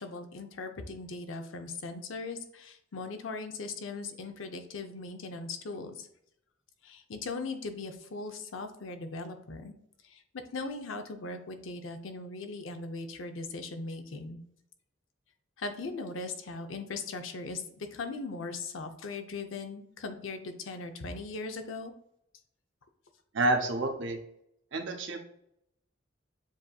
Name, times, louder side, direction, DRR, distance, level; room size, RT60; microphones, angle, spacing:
voice 1, 0.0-6.1 6.8-9.7 10.0-14.4 15.6-21.9, left 3 dB, 85° left, 7 dB, 0.6 m, -39 dB
voice 2, 23.3-24.2 24.7-25.2, right 2 dB, 70° right, 4 dB, 0.7 m, -28 dB
7.3 x 2.7 x 2.3 m, 0.75 s
head